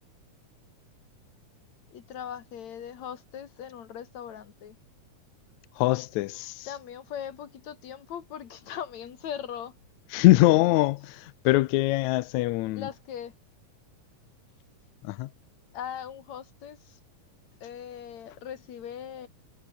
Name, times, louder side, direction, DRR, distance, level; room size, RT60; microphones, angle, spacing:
voice 1, 1.9-4.8 6.6-9.8 10.3-10.8 12.7-13.3 15.7-17.0 17.6-19.3, left 9 dB, 60° left, 3.2 m, -40 dB
voice 2, 5.8-6.7 10.1-12.9 15.0-15.3, left 18 dB, 75° left, 1.8 m, -23 dB
omnidirectional pair, 3.7 m